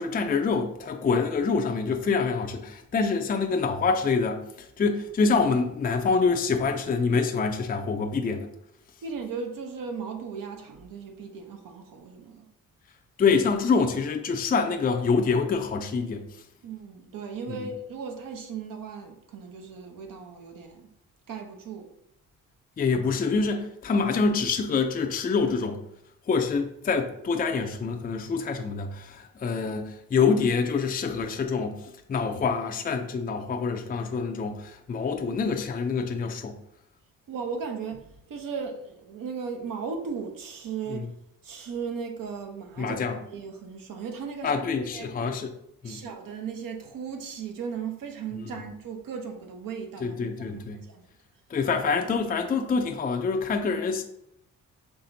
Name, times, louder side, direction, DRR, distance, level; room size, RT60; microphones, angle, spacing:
voice 1, 0.0-8.5 13.2-16.3 17.5-17.7 22.8-25.8 26.3-36.6 40.9-41.0 42.8-43.2 44.4-45.5 45.8-46.0 50.0-50.8 51.5-54.0, left 4 dB, 25° left, 0.4 m, -26 dB
voice 2, 9.0-12.5 16.6-20.9 21.3-21.9 37.3-41.2 41.4-43.0 43.3-45.2 45.8-51.0 51.7-51.9, right 5 dB, 70° right, 0.9 m, -37 dB
5.7 x 3.4 x 2.7 m
cardioid pair, 90°, 35 cm